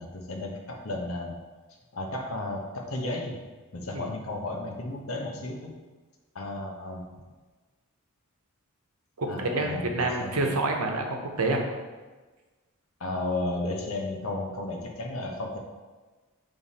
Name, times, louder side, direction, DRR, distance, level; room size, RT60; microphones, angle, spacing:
voice 1, 0.0-1.4 1.9-3.4 3.7-5.8 6.3-7.1 9.3-10.5 13.0-15.6, left 2 dB, 70° left, 1 dB, 0.9 m, -33 dB
voice 2, 9.2-11.6, right 2 dB, 90° right, 2 dB, 0.9 m, -28 dB
7.2 x 3.4 x 4.1 m, 1.3 s
head